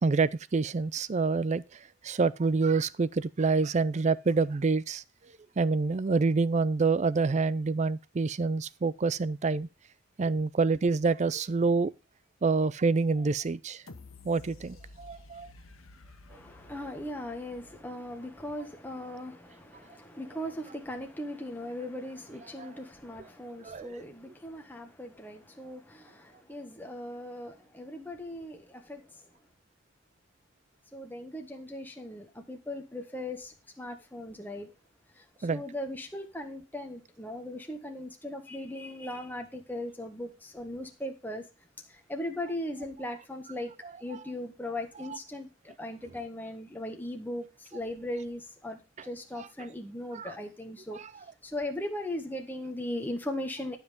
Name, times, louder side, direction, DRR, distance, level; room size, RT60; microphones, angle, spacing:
voice 1, 0.0-1.6 2.0-5.0 5.6-9.7 10.2-11.9 12.4-13.8 14.2-15.5 22.6-22.7 23.4-24.0 35.4-35.6 45.1-45.2 50.1-50.3 50.9-51.0, right 4 dB, 35° right, 0.4 m, -27 dB
sound 1, 13.9-18.8 19.2-19.3, left 2 dB, 75° left, 1.4 m, -52 dB
voice 2, 16.3-29.0 30.9-34.7 35.1-41.4 41.9-43.7 44.0-51.0 51.4-53.8, left 1 dB, 10° left, 1.5 m, -38 dB
12.0 x 5.7 x 5.1 m
head